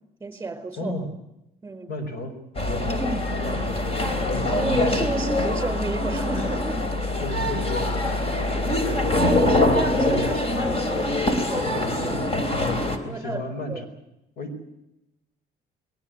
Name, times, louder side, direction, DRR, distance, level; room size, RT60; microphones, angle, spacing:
voice 1, 0.2-0.9 1.6-1.9 4.5-6.9 8.5-8.6 9.2-11.1 11.5-12.3 13.0-13.4 13.7-13.8, right 3 dB, 15° right, 10 dB, 4.6 m, -31 dB
voice 2, 0.8-1.1 1.9-2.4 2.6-5.3 7.2-9.3 13.0-13.8 14.4-14.6, left 2 dB, 65° left, 10 dB, 5.1 m, -34 dB
sound 1, 2.6-13.0, left 2 dB, 35° left, 3.6 m, -24 dB
21.5 x 18.5 x 9.5 m, 0.87 s
cardioid pair, 110°, 17 cm